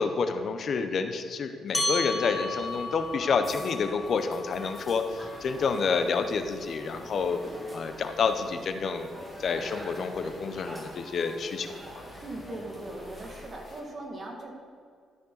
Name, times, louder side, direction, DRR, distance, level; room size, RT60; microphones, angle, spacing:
voice 1, 0.0-7.4 7.7-9.1 9.4-11.8, left 5 dB, 55° left, 8 dB, 0.7 m, -29 dB
sound 1, 1.7-6.5, left 2 dB, 5° left, 1.4 m, -35 dB
sound 2, 1.7-13.5, equal, 20° right, 1.6 m, -46 dB
sound 3, 4.4-13.8, left 1 dB, 30° left, 2.5 m, -52 dB
voice 2, 12.2-14.5, right 1 dB, 40° right, 0 dB, 1.9 m, -39 dB
13.0 x 5.3 x 3.9 m, 2.2 s
cardioid pair, 90°, 0 cm